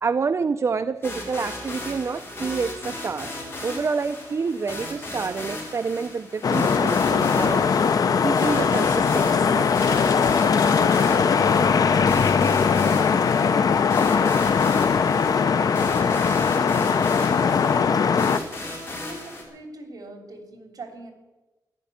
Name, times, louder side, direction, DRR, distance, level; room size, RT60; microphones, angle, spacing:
voice 1, 0.0-7.9 8.2-9.7, right 5 dB, 45° right, 10 dB, 0.5 m, -28 dB
sound 1, 1.0-19.4, left 1 dB, 35° left, 4.7 m, -36 dB
sound 2, 6.4-18.4, left 6 dB, 65° left, 0.7 m, -20 dB
voice 2, 19.0-21.1, right 2 dB, 60° right, 5 dB, 3.3 m, -41 dB
14.5 x 11.0 x 8.6 m, 1.1 s
wide cardioid pair, 130°, 7 cm